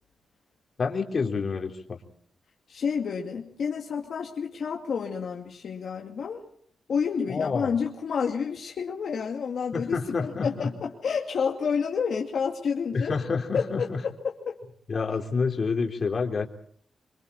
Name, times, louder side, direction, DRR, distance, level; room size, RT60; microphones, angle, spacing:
voice 1, 0.8-2.0 7.3-7.7 9.7-10.7 12.9-14.0 14.9-16.5, left 4 dB, 50° left, 3 dB, 3.7 m, -28 dB
voice 2, 2.7-6.4 6.9-13.2 13.5-14.6, left 6 dB, 70° left, 0 dB, 2.4 m, -29 dB
27.5 x 24.0 x 4.3 m, 0.63 s
cardioid pair, 100°, 0 cm